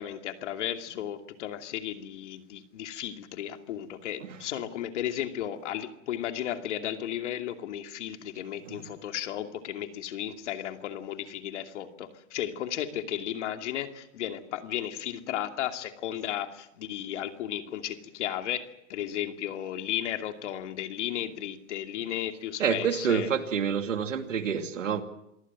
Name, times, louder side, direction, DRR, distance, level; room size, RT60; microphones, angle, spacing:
voice 1, 0.0-23.3, left 11 dB, 70° left, 6 dB, 2.7 m, -34 dB
voice 2, 22.6-25.0, right 7 dB, 90° right, 7 dB, 2.6 m, -28 dB
27.0 x 19.0 x 7.4 m, 0.82 s
hypercardioid pair, 120°, 37 cm